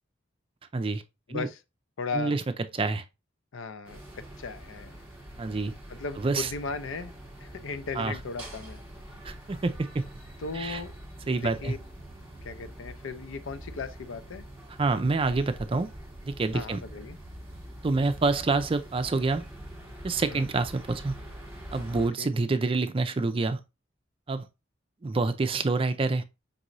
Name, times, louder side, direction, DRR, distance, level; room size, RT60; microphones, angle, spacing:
voice 1, 0.7-1.0 1.3-1.5 2.1-2.4 2.7-3.0 5.4-5.7 6.2-6.5 8.0-8.1 9.2-10.0 10.5-10.8 11.3-11.7 14.8-15.9 16.2-16.8 17.8-19.4 20.0-21.1 21.7-23.6 24.3-24.5 25.0-26.2, right 3 dB, 30° right, 0.4 m, -27 dB
voice 2, 1.3-1.6 2.0-2.4 3.5-4.0 4.4-5.0 5.9-7.1 7.4-8.8 10.4-10.9 11.3-11.8 12.4-14.4 16.5-17.2 20.3-20.5 22.0-22.3, left 4 dB, 90° left, 0.5 m, -36 dB
sound 1, 3.8-22.1, right 1 dB, 10° right, 1.6 m, -44 dB
5.3 x 3.0 x 2.5 m
head